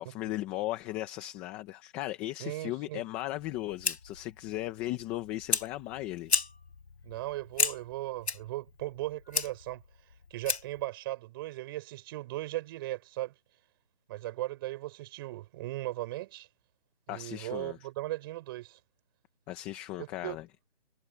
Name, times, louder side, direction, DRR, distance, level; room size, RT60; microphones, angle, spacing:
voice 1, 0.0-6.3 17.1-17.8 19.5-20.5, left 16 dB, 5° left, 0.9 m, -37 dB
voice 2, 2.4-3.0 7.0-9.8 10.3-13.3 14.1-16.5 17.1-18.8 20.0-20.4, right 17 dB, 20° right, 6.3 m, -37 dB
Fire, 3.4-10.9, left 5 dB, 70° left, 1.8 m, -35 dB
figure-of-eight pair, 165°, 33 cm